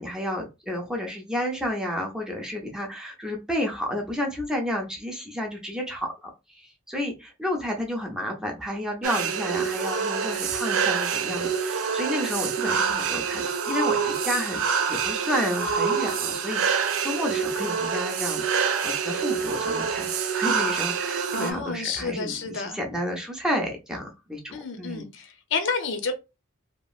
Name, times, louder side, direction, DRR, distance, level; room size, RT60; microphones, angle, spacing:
voice 1, 0.0-18.4 18.8-25.1, equal, 5° right, 0.5 m, -31 dB
sound 1, 9.0-21.5, right 6 dB, 90° right, 0.4 m, -26 dB
voice 2, 21.3-22.8 24.5-26.1, left 4 dB, 60° left, 0.6 m, -30 dB
2.9 x 2.4 x 2.3 m
head